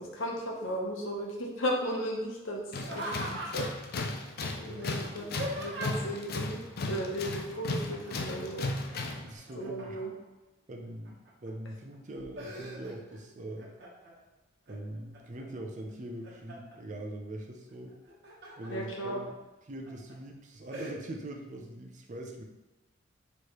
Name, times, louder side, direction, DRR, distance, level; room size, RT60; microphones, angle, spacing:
voice 1, 0.0-3.6 4.5-5.2 5.5-8.7 9.5-10.1 18.7-19.2, equal, 80° left, -1 dB, 0.9 m, -35 dB
Tools, 2.7-9.3, left 2 dB, 50° left, 0.5 m, -35 dB
Laughter, 2.8-3.9 4.8-6.2 7.9-8.4 8.7-10.3 10.9-11.5 11.9-13.2 13.6-14.2 14.7-15.4 15.9-16.8 17.9-18.7 19.2-19.3 19.9-20.1 20.7-20.9, right 1 dB, 60° right, 1.1 m, -41 dB
voice 2, 4.6-4.9 9.0-10.0 10.7-13.7 14.7-18.0 18.6-19.3 19.6-22.4, right 1 dB, 40° right, 2 dB, 0.5 m, -42 dB
4.6 x 3.2 x 3.0 m, 1.1 s
head